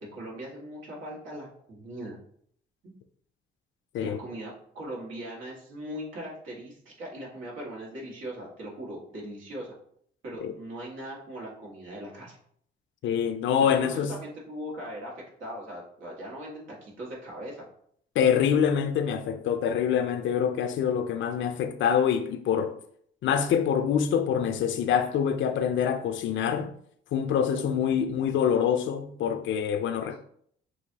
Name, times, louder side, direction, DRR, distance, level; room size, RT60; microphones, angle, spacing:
voice 1, 0.1-2.2 2.8-2.9 4.0-9.8 10.2-12.4 13.6-15.1 15.4-17.6, right 1 dB, 80° right, 1.9 m, -40 dB
voice 2, 13.0-14.1 18.2-22.7 23.2-26.7 27.1-30.2, left 8 dB, 70° left, 0.5 m, -25 dB
6.2 x 2.6 x 2.8 m
cardioid pair, 90°, 20 cm